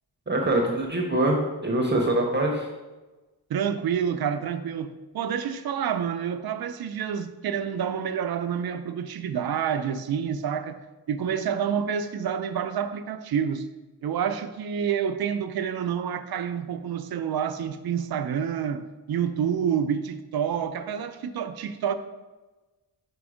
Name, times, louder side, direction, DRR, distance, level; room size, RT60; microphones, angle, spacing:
voice 1, 0.3-2.7, right 1 dB, 25° right, 0.8 m, -24 dB
voice 2, 3.5-10.8 11.1-13.7 14.0-22.0, right 8 dB, 65° right, 0.5 m, -28 dB
5.2 x 5.1 x 4.9 m
wide cardioid pair, 180°, 39 cm